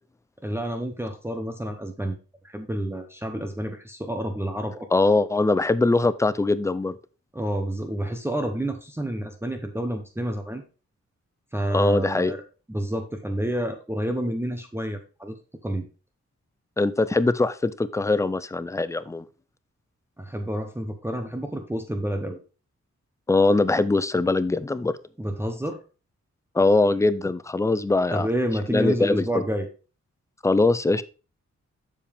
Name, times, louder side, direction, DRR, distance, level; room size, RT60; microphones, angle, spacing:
voice 1, 0.4-2.2 2.4-4.9 7.3-10.6 11.5-12.4 12.7-15.4 15.6-15.9 20.2-22.4 25.2-25.8 28.1-29.7, right 1 dB, 10° right, 4 dB, 0.8 m, -29 dB
voice 2, 4.9-7.0 11.7-12.3 16.8-19.2 23.3-25.0 26.5-28.3 28.7-29.4 30.4-31.0, left 2 dB, 10° left, 16 dB, 0.3 m, -22 dB
7.2 x 7.1 x 3.4 m, 0.34 s
wide cardioid pair, 160°, 29 cm